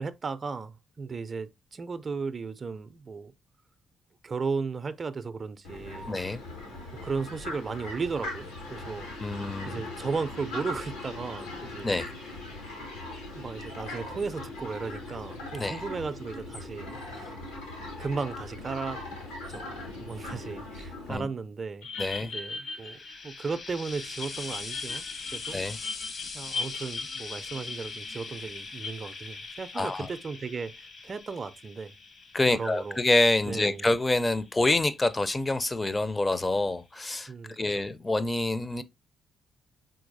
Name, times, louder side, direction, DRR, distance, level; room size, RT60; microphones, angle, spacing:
voice 1, 0.0-3.3 4.2-6.1 7.0-9.1 9.6-12.0 13.3-17.3 18.0-19.0 19.5-19.7 20.0-21.9 22.2-23.0 23.2-25.0 25.3-26.0 26.3-31.9 32.5-33.0 33.5-33.9 37.3-37.9, right 4 dB, 45° right, 0.4 m, -35 dB
Fowl, 5.6-21.2, left 2 dB, 90° left, 1.3 m, -40 dB
voice 2, 6.1-6.4 9.2-9.8 11.8-12.1 15.6-15.8 21.1-21.3 22.0-22.3 25.5-25.8 29.7-30.1 32.3-38.8, left 2 dB, 25° left, 0.5 m, -27 dB
sound 1, 21.8-23.7 24.0-28.9, left 4 dB, 75° left, 0.8 m, -38 dB
Frying (food), 22.4-35.8 36.8-36.9, left 4 dB, 50° left, 0.9 m, -43 dB
4.4 x 3.9 x 2.6 m
hypercardioid pair, 45°, 0 cm